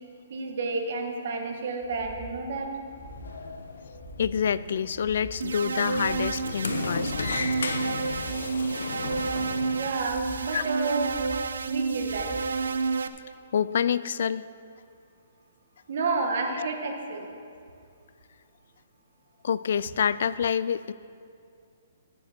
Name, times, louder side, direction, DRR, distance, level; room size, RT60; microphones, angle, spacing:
voice 1, 0.3-2.7 9.7-11.1 11.7-12.3 15.9-17.3, right 3 dB, 55° right, 3 dB, 1.5 m, -30 dB
sound 1, 1.8-2.4 2.8-3.4 3.8-4.4 4.8-5.4 5.8-6.4 6.8-7.4 7.8-8.4 8.8-9.4 9.9-10.4 10.9-11.5 11.9-12.5 12.9-13.0, equal, 15° right, 1.6 m, -45 dB
Sliding door, 2.9-9.9, left 4 dB, 85° left, 0.8 m, -35 dB
voice 2, 4.2-7.1 10.5-10.6 13.5-14.4 16.6-16.7 19.4-20.9, left 7 dB, 65° left, 16 dB, 0.3 m, -27 dB
sound 2, 5.4-13.1, right 4 dB, 85° right, 0.6 m, -30 dB
12.5 x 7.1 x 6.0 m, 2.4 s
hypercardioid pair, 155°, 0 cm